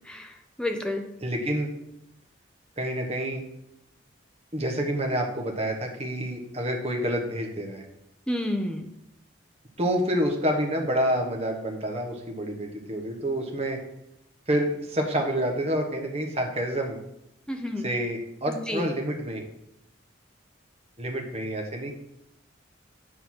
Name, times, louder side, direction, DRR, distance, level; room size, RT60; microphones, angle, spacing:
voice 1, 0.1-1.0 8.3-8.9 17.5-17.8 18.5-18.9, left 1 dB, 5° left, 4 dB, 0.7 m, -30 dB
voice 2, 1.2-1.7 2.8-3.4 4.5-7.8 9.8-13.8 14.5-17.0 17.8-19.4 21.0-21.9, equal, 30° right, 2 dB, 1.3 m, -28 dB
9.5 x 4.1 x 6.0 m, 0.81 s
head